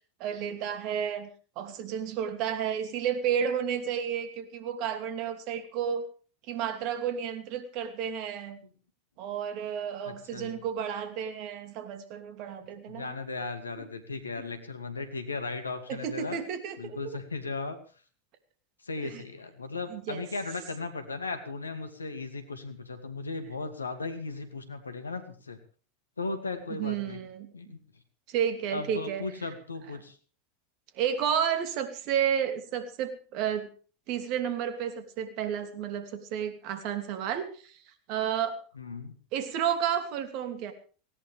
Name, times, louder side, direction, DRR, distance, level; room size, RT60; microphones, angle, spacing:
voice 1, 0.2-1.3 1.6-6.0 6.5-8.6 9.2-13.1 13.8-13.9 15.9-17.2 19.0-19.2 19.9-20.2 26.8-27.5 28.3-29.2 31.0-33.7 34.1-37.7 38.1-38.6 39.3-40.7, right 8 dB, 50° right, 9 dB, 2.7 m, -31 dB
voice 2, 10.1-10.6 12.9-16.4 16.8-17.8 18.8-25.6 26.2-27.2 27.5-27.8 28.7-30.2 38.7-39.2, left 3 dB, 85° left, 8 dB, 2.4 m, -36 dB
18.5 x 17.5 x 3.5 m, 0.39 s
figure-of-eight pair, 85°, 0 cm